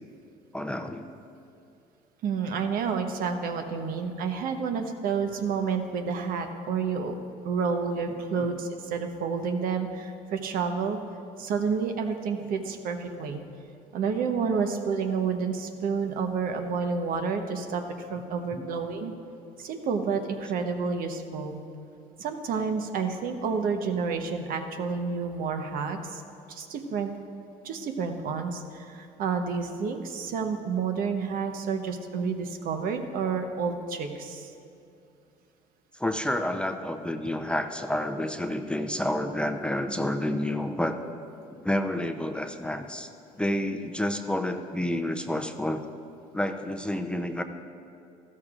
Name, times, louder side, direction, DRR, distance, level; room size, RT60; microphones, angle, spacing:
voice 1, 0.5-1.1 8.4-8.5 18.5-18.7 35.9-41.0 41.5-43.1 43.4-45.8 46.3-47.4, left 1 dB, 5° left, 6 dB, 0.5 m, -29 dB
voice 2, 2.2-7.2 7.4-11.0 11.4-13.4 13.9-19.1 19.6-21.6 22.2-26.2 26.5-27.1 27.6-34.5, right 5 dB, 65° right, 6 dB, 1.0 m, -29 dB
14.0 x 13.0 x 2.5 m, 2.5 s
supercardioid pair, 90°, 16 cm